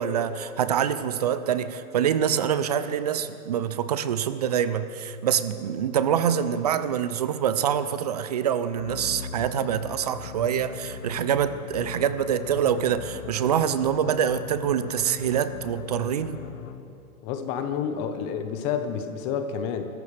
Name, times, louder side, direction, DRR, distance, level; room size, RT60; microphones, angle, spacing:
voice 1, 0.0-16.4, right 8 dB, 30° right, 13 dB, 0.4 m, -25 dB
sound 1, 8.7-17.0, left 7 dB, 65° left, 1.1 m, -40 dB
voice 2, 17.2-19.8, left 7 dB, 30° left, 8 dB, 1.1 m, -29 dB
25.0 x 14.5 x 3.4 m, 2.9 s
hypercardioid pair, 135°, 44 cm